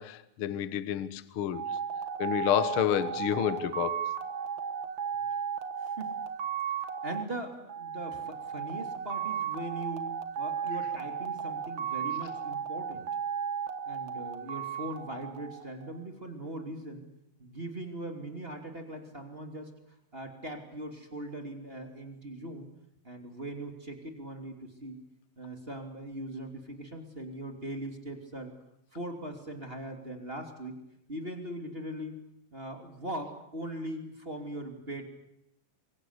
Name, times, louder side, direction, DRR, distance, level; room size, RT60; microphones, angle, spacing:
voice 1, 0.0-1.6 2.2-4.1, left 10 dB, 60° left, 1.4 m, -29 dB
sound 1, 1.5-16.0, right 7 dB, 60° right, 1.2 m, -35 dB
voice 2, 5.8-6.1 7.0-13.2 13.9-17.1 17.4-19.7 20.1-22.7 23.0-25.0 25.4-28.5 28.9-30.8 31.1-32.2 32.5-35.1, right 1 dB, 15° right, 2.6 m, -40 dB
27.5 x 23.0 x 8.2 m
omnidirectional pair, 4.3 m